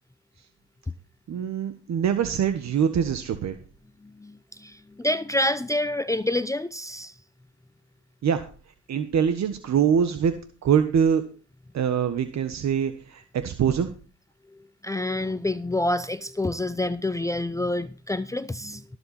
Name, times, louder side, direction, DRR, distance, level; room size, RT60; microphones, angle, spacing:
voice 1, 1.3-3.6 8.2-8.5 8.9-10.3 10.6-11.3 11.7-13.9, right 8 dB, 65° right, 1.5 m, -24 dB
voice 2, 4.0-7.1 14.8-18.8, left 1 dB, 10° left, 0.7 m, -27 dB
17.5 x 7.9 x 4.3 m
cardioid pair, 90°, 30 cm